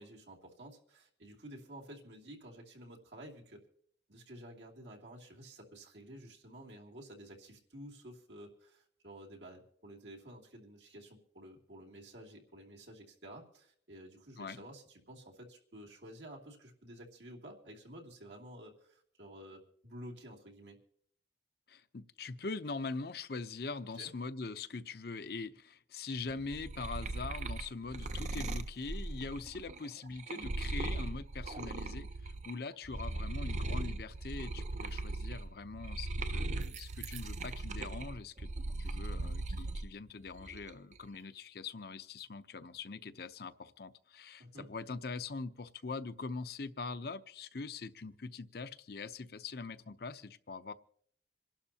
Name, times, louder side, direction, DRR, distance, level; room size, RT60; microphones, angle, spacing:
voice 1, 0.0-3.6 4.1-20.8 23.9-24.1 44.4-44.7, right 1 dB, 85° right, -1 dB, 2.8 m, -51 dB
voice 2, 21.7-38.5 38.8-50.7, left 4 dB, 60° left, 12 dB, 0.7 m, -43 dB
sound 1, 26.3-32.5 32.8-39.9 40.3-40.9, right 2 dB, 40° right, 0.6 m, -39 dB
27.0 x 11.5 x 2.9 m, 0.64 s
head